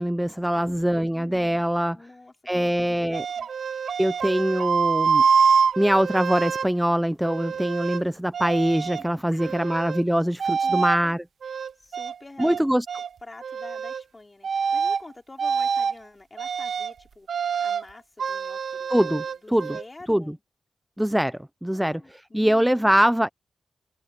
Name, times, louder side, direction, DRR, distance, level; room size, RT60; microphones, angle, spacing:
voice 1, 0.0-2.0 2.5-3.3 4.0-5.2 5.8-11.2 12.4-12.9 18.9-19.2 19.5-19.7 20.1-20.2 21.0-23.3, equal, 5° right, 0.4 m, -23 dB
voice 2, 1.9-3.1 3.4-3.5 9.3-9.9 10.6-11.2 11.8-12.6 13.2-20.4 21.7-23.1, left 2 dB, 20° left, 4.3 m, -47 dB
sound 1, 3.1-6.7 7.2-8.0 8.3-9.1 9.4-10.0 10.4-11.0 11.4-12.6 12.9-13.1 13.4-14.0 14.4-15.0 15.4-15.9 16.4-16.9 17.3-17.8 18.2-19.8, right 6 dB, 65° right, 0.9 m, -25 dB
wide cardioid pair, 110°, 0 cm